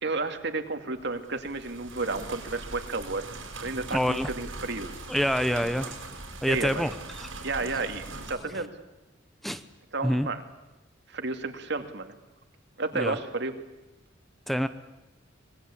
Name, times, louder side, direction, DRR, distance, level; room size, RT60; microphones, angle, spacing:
voice 1, 0.0-3.3 3.6-4.9 6.5-6.9 7.4-8.7 9.9-10.4 11.1-12.1 12.8-13.5, right 3 dB, 60° right, 7 dB, 2.4 m, -32 dB
sound 1, 1.1-8.4, right 3 dB, 80° right, 5.5 m, -41 dB
voice 2, 3.9-4.3 5.1-6.0 6.4-6.9 7.2-7.3 9.4-9.6 10.0-10.3 12.9-13.2 14.5-14.7, equal, ahead, 11 dB, 0.8 m, -26 dB
26.0 x 20.5 x 8.6 m, 0.98 s
head